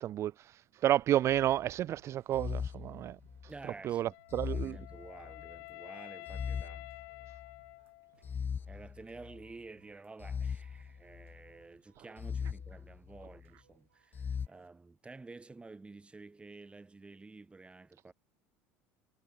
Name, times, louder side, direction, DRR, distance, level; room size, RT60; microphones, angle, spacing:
voice 1, 0.0-3.2 3.8-4.8, right 12 dB, 45° right, 0.3 m, -31 dB
sound 1, 1.2-1.7 2.3-3.6 4.3-5.6 6.3-7.6 8.2-9.5 10.2-11.5 12.2-13.5 14.1-14.5, left 6 dB, 30° left, 0.8 m, -40 dB
sound 2, 1.6-14.7, right 10 dB, 90° right, 4.4 m, -71 dB
voice 2, 3.5-6.9 8.7-18.1, right 3 dB, 15° right, 2.3 m, -51 dB
Wind instrument woodwind instrument, 4.1-8.3, left 40 dB or more, 70° left, 1.6 m, -50 dB
hypercardioid pair, 75°, 7 cm